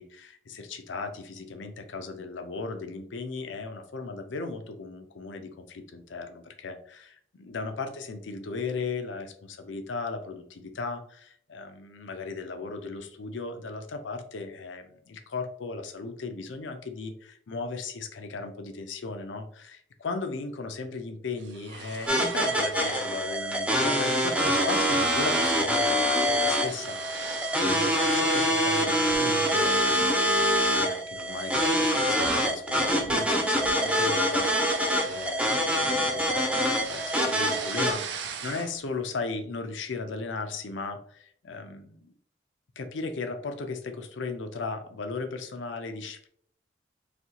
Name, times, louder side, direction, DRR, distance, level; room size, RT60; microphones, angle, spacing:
voice 1, 0.0-42.1 42.8-46.3, left 4 dB, 90° left, 6 dB, 0.5 m, -37 dB
sound 1, 21.4-23.0 23.4-23.6 23.9-25.7 26.0-28.2 28.6-30.2 30.7-30.9 31.3-35.9 36.2-38.9, right 6 dB, 75° right, 0.5 m, -41 dB
sound 2, 22.1-37.9, equal, 5° right, 0.4 m, -25 dB
4.1 x 2.7 x 2.8 m, 0.63 s
head